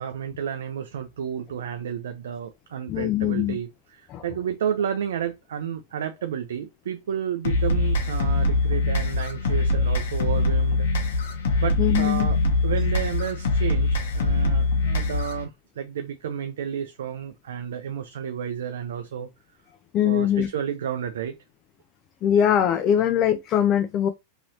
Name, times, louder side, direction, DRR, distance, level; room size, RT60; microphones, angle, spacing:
voice 1, 0.0-11.2 11.6-19.3 20.0-21.4, right 8 dB, 85° right, 0.4 m, -31 dB
voice 2, 2.9-3.6 4.1-4.2 11.8-12.3 19.9-20.5 22.2-24.1, left 10 dB, 40° left, 0.3 m, -21 dB
sound 1, 7.4-15.4, left 2 dB, 80° left, 0.9 m, -23 dB
3.0 x 2.8 x 2.7 m
hypercardioid pair, 125°, 0 cm